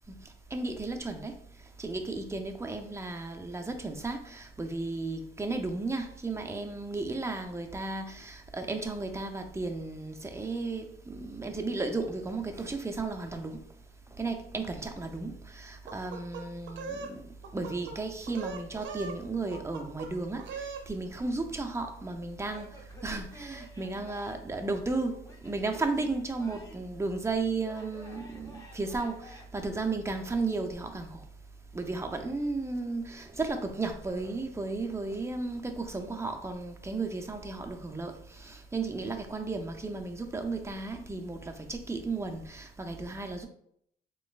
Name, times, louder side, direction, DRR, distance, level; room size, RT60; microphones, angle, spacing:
voice 1, 0.5-1.3 1.8-13.6 14.2-17.2 17.5-22.7 23.0-31.2 31.7-43.5, right 3 dB, 15° right, 0.6 m, -34 dB
sound 1, 15.9-17.1 17.4-18.0 18.3-19.2 19.5-20.1 20.4-20.9, right 5 dB, 70° right, 0.7 m, -40 dB
Male speech man speaking / Yell / Laughter, 22.4-24.6 25.2-27.0 27.6-29.5, equal, 15° left, 0.8 m, -52 dB
4.3 x 3.1 x 2.4 m
cardioid pair, 90°, 20 cm